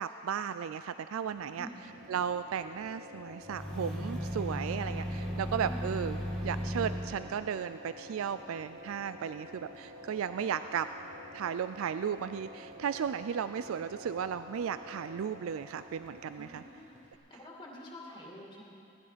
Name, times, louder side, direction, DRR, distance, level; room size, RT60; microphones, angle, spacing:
voice 1, 0.0-1.7 2.1-10.9 11.3-16.6, right 7 dB, 75° right, 12 dB, 0.3 m, -35 dB
sound 1, 1.2-17.1, left 1 dB, 35° right, 1.4 m, -50 dB
voice 2, 1.5-1.9 5.6-5.9 16.3-17.0 17.3-18.7, left 1 dB, 25° left, -3 dB, 2.4 m, -47 dB
sound 2, 3.4-7.1, equal, 5° left, 3.5 m, -36 dB
18.0 x 13.5 x 5.1 m, 2.6 s
head